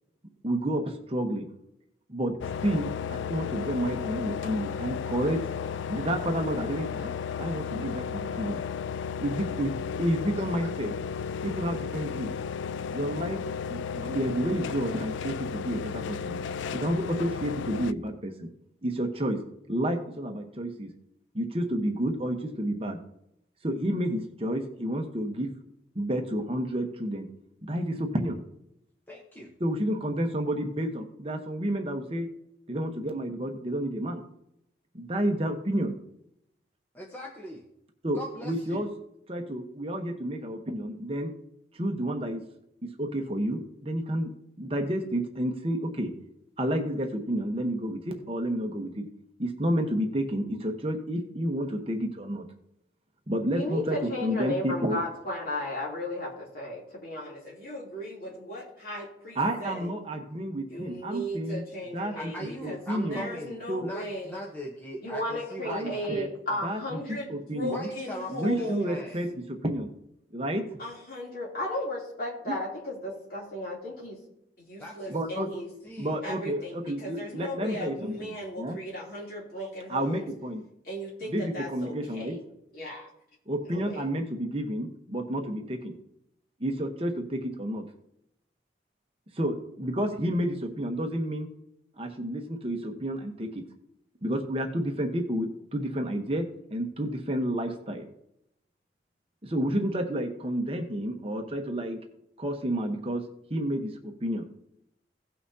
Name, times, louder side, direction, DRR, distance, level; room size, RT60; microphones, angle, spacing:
voice 1, 0.4-1.5 2.1-5.4 5.9-7.1 7.4-8.6 9.2-9.7 10.0-10.9 11.4-12.3 12.9-13.4 13.7-16.4 16.7-18.5 18.8-19.4 19.7-20.9 21.3-23.0 23.6-25.5 25.9-27.3 27.6-28.4 29.6-32.3 32.7-34.2 34.9-35.9 38.0-38.9 39.3-41.3 41.7-42.4 42.8-44.3 44.6-46.1 46.6-49.1 49.4-52.4 53.3-55.0 59.4-61.6 61.9-62.1 62.6-63.3 63.7-63.9 65.6-66.3 66.6-67.9 68.3-69.9 70.3-70.6 72.5-72.6 75.1-75.5 76.0-78.8 79.9-80.6 81.2-82.4 83.5-85.9 86.6-87.8 89.3-91.5 92.0-93.6 94.2-96.4 96.7-98.0 99.4-102.0 102.4-103.2 103.5-104.5, right 1 dB, 30° right, 3 dB, 1.0 m, -30 dB
sound 1, 2.4-17.9, left 7 dB, 90° left, 0.3 m, -34 dB
voice 2, 10.3-10.7 29.1-29.5 36.9-37.7 38.1-38.8 62.1-66.1 67.7-69.2 74.8-76.2, equal, 10° left, -2 dB, 0.9 m, -40 dB
voice 3, 53.5-59.9 60.7-64.4 65.0-69.0 70.8-74.2 74.6-75.7 76.2-80.2 80.8-82.4 82.7-83.1 83.6-84.0, left 1 dB, 50° left, -4 dB, 3.1 m, -35 dB
17.5 x 5.8 x 2.8 m, 0.79 s
head